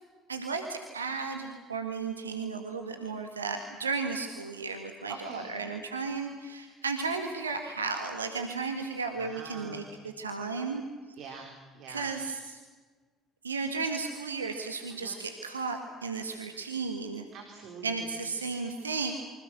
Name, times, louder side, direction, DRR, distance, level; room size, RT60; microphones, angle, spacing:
voice 1, 0.3-10.8 11.9-12.6 13.4-17.3 17.8-19.1, right 4 dB, 85° right, 5 dB, 1.8 m, -34 dB
voice 2, 5.1-5.6 9.2-10.0 11.2-12.1 15.0-15.2 17.3-17.9, right 5 dB, 55° right, 4 dB, 3.7 m, -45 dB
28.5 x 25.0 x 6.3 m, 1.4 s
figure-of-eight pair, 55°, 0 cm